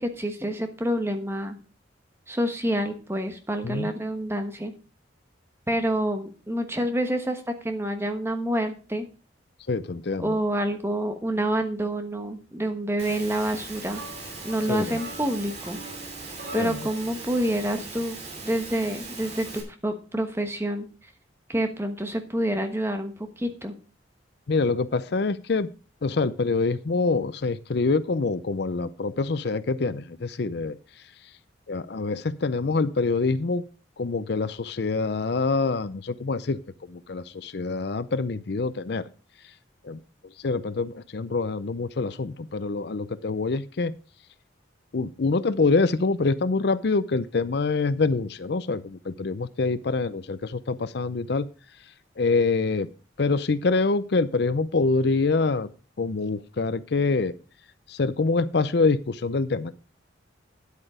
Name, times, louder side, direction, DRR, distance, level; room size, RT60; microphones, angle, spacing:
voice 1, 0.0-1.6 2.3-4.7 5.7-9.1 10.2-14.0 14.4-15.8 16.5-18.2 18.4-20.9 21.5-23.7, right 1 dB, 15° right, 6 dB, 1.2 m, -28 dB
voice 2, 9.7-10.2 14.7-15.0 16.5-16.7 24.5-25.7 26.0-30.7 31.7-33.6 34.0-36.6 37.1-39.1 39.9-40.0 40.4-43.9 44.9-51.5 52.2-52.9 53.2-55.7 56.0-57.3 58.0-59.7, left 3 dB, 60° left, 16 dB, 0.5 m, -25 dB
Engine / Mechanisms, 13.0-19.6, right 3 dB, 35° right, 3.0 m, -39 dB
sound 1, 13.9-17.1, right 1 dB, 50° right, 2.5 m, -43 dB
10.0 x 8.2 x 5.0 m, 0.35 s
head